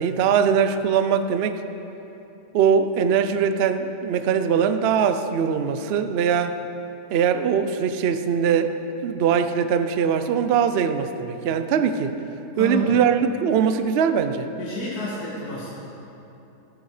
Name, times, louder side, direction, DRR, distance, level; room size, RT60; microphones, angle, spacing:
voice 1, 0.0-1.6 2.5-6.6 7.1-12.1 12.6-14.5, right 7 dB, 60° right, 9 dB, 0.6 m, -21 dB
voice 2, 12.5-13.0 14.6-15.7, left 1 dB, 60° left, -7 dB, 2.6 m, -30 dB
13.5 x 12.5 x 5.0 m, 2.9 s
omnidirectional pair, 1.8 m